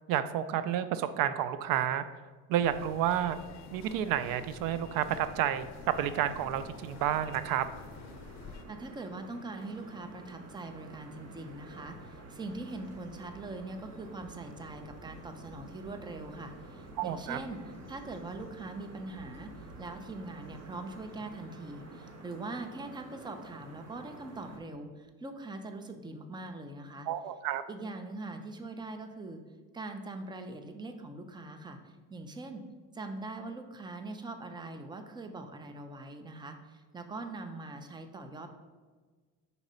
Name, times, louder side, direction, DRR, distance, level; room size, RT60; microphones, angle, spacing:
voice 1, 0.1-2.0 2.5-3.4 3.7-7.7 17.0-17.4 27.1-27.6, right 10 dB, 75° right, 12 dB, 0.5 m, -30 dB
sound 1, 2.6-8.6, left 5 dB, 55° left, 0.6 m, -49 dB
sound 2, 5.7-24.6, right 2 dB, 45° right, 1.2 m, -50 dB
voice 2, 8.7-27.1 27.7-29.4 29.7-32.7 32.9-38.5, right 2 dB, 15° right, 6 dB, 0.6 m, -42 dB
4.9 x 4.1 x 5.5 m, 1.4 s
cardioid pair, 115°, 34 cm